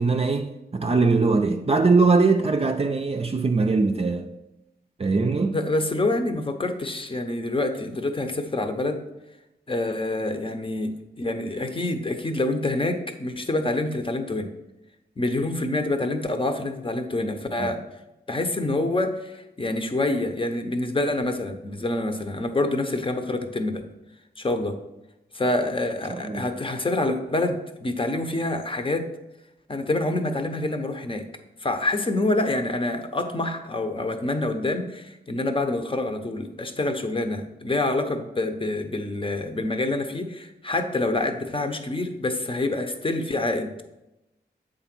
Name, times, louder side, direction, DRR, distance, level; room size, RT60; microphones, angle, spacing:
voice 1, 0.0-4.3 5.0-5.6 17.6-17.7 26.1-26.4, right 4 dB, 35° right, 0.5 m, -21 dB
voice 2, 5.5-9.0 9.7-14.5 15.2-17.8 18.3-23.8 24.4-24.8 25.3-29.1 29.7-31.2 31.6-43.8, left 2 dB, 30° left, 0.8 m, -26 dB
8.0 x 3.9 x 6.0 m
wide cardioid pair, 90°, 17 cm